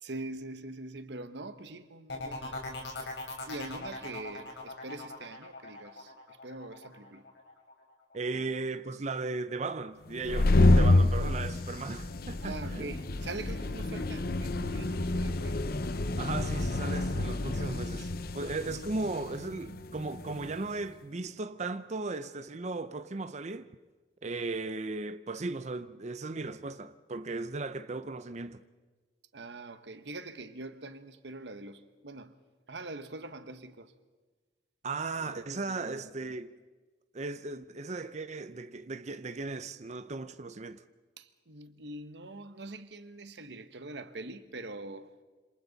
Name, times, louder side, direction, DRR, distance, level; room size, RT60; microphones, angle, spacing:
voice 1, 0.0-3.1 3.5-7.3 8.3-8.6 12.4-15.6 17.7-17.9 18.4-18.9 29.3-32.4 32.7-33.9 35.2-36.3 41.2-45.1, right 2 dB, 75° right, 1.1 m, -44 dB
sound 1, 2.1-7.7 8.1-8.6, left 2 dB, 85° left, 4.4 m, -41 dB
voice 2, 8.1-12.9 16.2-18.1 18.3-23.7 24.2-28.6 34.8-36.5 37.1-40.8, right 3 dB, 40° right, 0.7 m, -36 dB
sound 2, 10.1-20.6, left 2 dB, 55° left, 0.8 m, -28 dB
27.5 x 26.5 x 4.1 m
head